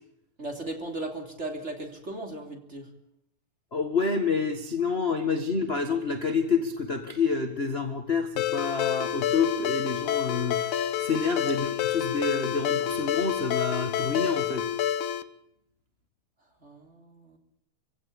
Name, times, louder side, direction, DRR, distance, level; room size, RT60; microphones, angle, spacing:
voice 1, 0.4-2.9 11.0-11.3 16.6-17.4, right 2 dB, 20° right, 4 dB, 3.4 m, -37 dB
voice 2, 3.7-14.6, left 5 dB, 30° left, 6 dB, 1.3 m, -28 dB
Ringtone, 8.4-15.2, left 10 dB, 75° left, 2.4 m, -28 dB
26.0 x 16.5 x 8.7 m, 0.80 s
omnidirectional pair, 3.6 m